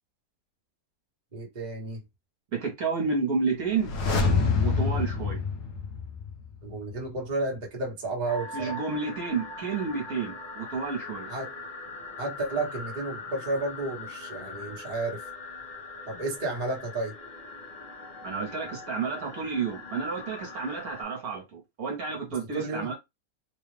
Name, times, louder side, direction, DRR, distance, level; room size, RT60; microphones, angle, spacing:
voice 1, 1.3-2.0 6.6-8.7 11.3-11.5 12.2-15.3 16.1-17.1 22.5-22.9, right 2 dB, 30° right, 1.2 m, -32 dB
voice 2, 2.5-3.9 4.6-5.4 8.5-11.3 18.2-22.9, right 4 dB, 65° right, 1.5 m, -30 dB
sound 1, 3.7-6.6 6.9-7.0, left 4 dB, 70° left, 1.4 m, -26 dB
sound 2, 8.3-21.0, left 3 dB, 35° left, 1.0 m, -41 dB
3.7 x 2.4 x 3.2 m
omnidirectional pair, 1.8 m